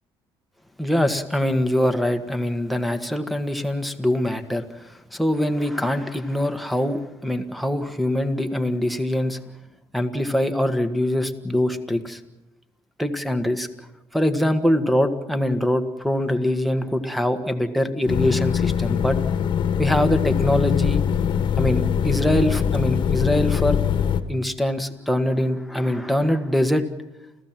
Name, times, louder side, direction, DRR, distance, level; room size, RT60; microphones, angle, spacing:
voice 1, 0.8-9.4 9.9-12.2 13.0-13.7 14.1-19.2 19.8-21.0 21.6-23.8 24.3-26.8, left 1 dB, ahead, 5 dB, 1.6 m, -23 dB
sound 1, 18.1-24.2, left 8 dB, 55° left, 1.5 m, -22 dB
29.5 x 15.0 x 7.6 m, 1.0 s
cardioid pair, 135°, 10 cm